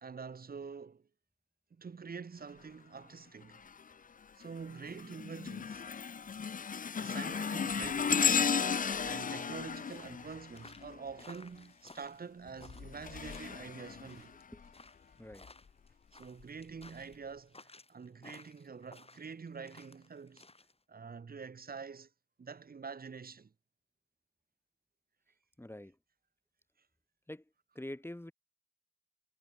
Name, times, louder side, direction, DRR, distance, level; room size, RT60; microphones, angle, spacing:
voice 1, 0.0-1.1 1.7-3.7 4.3-5.8 6.2-6.6 7.0-8.6 9.0-14.3 16.1-20.4 20.9-22.1 22.4-23.5, right 5 dB, 80° right, 1.2 m, -46 dB
sound 1, 3.5-3.9 4.4-11.2 12.5-14.7 15.3-15.5 16.4-16.5, left 6 dB, 65° left, 0.5 m, -35 dB
sound 2, 9.3-20.7, left 3 dB, 40° left, 2.0 m, -58 dB
voice 2, 15.2-15.5 25.6-25.9 27.3-27.4 27.7-28.3, left 1 dB, 15° left, 1.3 m, -45 dB
wide cardioid pair, 55°, 15 cm